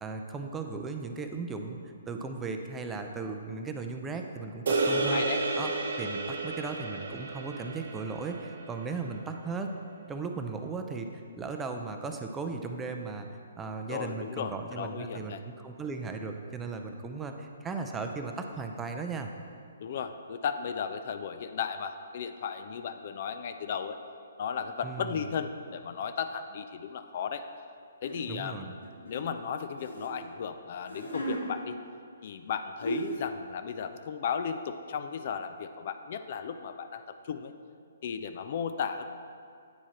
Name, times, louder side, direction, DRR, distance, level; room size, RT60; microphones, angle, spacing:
voice 1, 0.0-1.8 2.1-5.2 5.5-5.7 6.0-9.7 10.1-19.3 24.8-25.1 28.3-28.7, right 4 dB, 10° right, 4 dB, 0.5 m, -37 dB
sound 1, 4.7-9.1, right 3 dB, 60° right, 0.8 m, -32 dB
voice 2, 4.9-5.4 13.9-15.4 19.8-24.0 24.4-27.4 28.0-28.7 29.1-31.8 32.2-37.5 38.0-39.1, left 7 dB, 50° left, 9 dB, 0.4 m, -35 dB
sound 2, 28.0-28.2 28.8-30.1 30.8-31.4 32.4-32.5 32.8-33.3, right 2 dB, 75° left, 1.3 m, -35 dB
8.5 x 4.6 x 4.3 m, 2.3 s
figure-of-eight pair, 135°, 0 cm